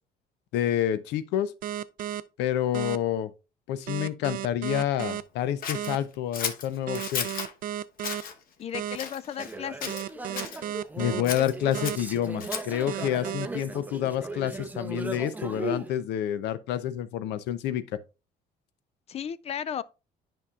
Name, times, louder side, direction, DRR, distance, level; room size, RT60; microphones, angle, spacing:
voice 1, 0.5-1.5 2.4-3.3 3.7-7.3 11.0-17.8, left 11 dB, 85° left, 0.6 m, -28 dB
sound 1, 1.6-2.2 2.7-3.0 3.9-5.2 5.7-6.0 6.9-8.2 8.7-9.0 9.9-11.2 11.7-12.0 12.9-13.5, right 11 dB, 55° right, 0.5 m, -33 dB
Scissors, 5.6-7.5 8.0-8.3 8.9-9.6 9.8-10.6 11.2-12.8, left 6 dB, 60° left, 1.0 m, -34 dB
voice 2, 8.6-10.0 19.1-19.8, left 9 dB, 40° left, 0.4 m, -34 dB
sound 2, 9.4-15.9, right 2 dB, 10° right, 0.6 m, -37 dB
10.0 x 5.4 x 2.4 m
cardioid pair, 110°, 17 cm